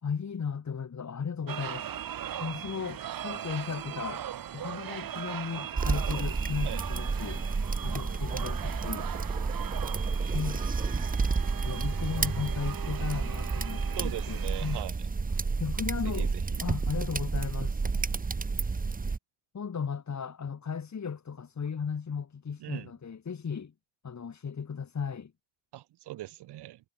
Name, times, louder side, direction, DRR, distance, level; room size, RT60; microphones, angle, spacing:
voice 1, 0.0-1.9 2.4-4.2 4.5-7.4 7.8-9.1 10.1-11.1 11.6-14.8 15.3-16.3 16.6-17.9 19.5-23.7 24.0-25.3, left 6 dB, 40° left, 6.7 m, -36 dB
sound 1, 1.5-14.8, right 10 dB, 55° right, 2.6 m, -39 dB
sound 2, 5.8-19.2, right 4 dB, 20° right, 1.3 m, -31 dB
voice 2, 14.0-15.0 16.1-16.6 22.6-22.9 25.7-26.8, right 14 dB, 75° right, 4.0 m, -40 dB
supercardioid pair, 65°, 41 cm